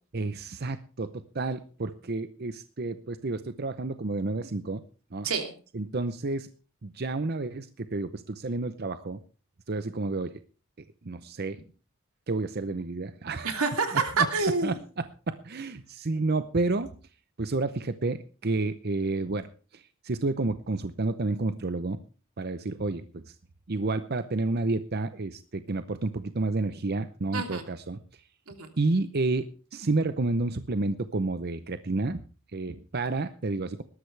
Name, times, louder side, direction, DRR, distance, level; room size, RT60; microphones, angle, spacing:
voice 1, 0.1-4.8 5.1-5.3 5.7-6.5 6.8-9.2 9.7-10.4 11.0-11.6 12.3-13.6 14.6-16.9 17.4-22.0 22.4-23.2 23.7-28.0 28.8-32.2 32.5-33.8, right 3 dB, 45° right, 11 dB, 0.7 m, -30 dB
voice 2, 13.4-14.8 27.3-27.6 28.5-28.7, right 4 dB, 90° right, 5 dB, 3.0 m, -27 dB
19.0 x 13.0 x 3.3 m, 0.36 s
head